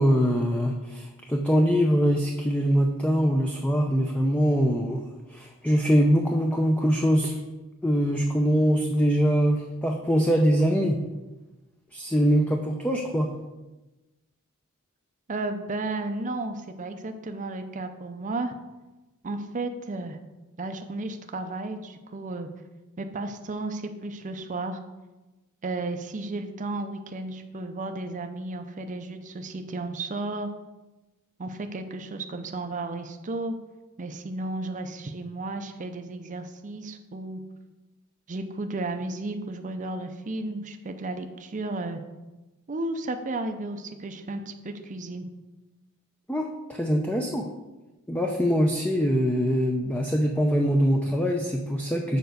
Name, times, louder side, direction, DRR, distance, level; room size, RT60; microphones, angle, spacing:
voice 1, 0.0-5.0 5.3-7.4 7.8-11.0 11.9-13.3 46.3-47.5 48.1-52.2, equal, 5° left, 1 dB, 0.5 m, -23 dB
voice 2, 15.3-18.5 19.2-20.2 20.6-22.5 23.0-24.8 25.6-30.5 31.4-33.6 34.0-37.4 38.3-42.0 42.7-45.3, right 2 dB, 35° right, 6 dB, 0.5 m, -33 dB
7.0 x 4.5 x 6.4 m, 1.1 s
head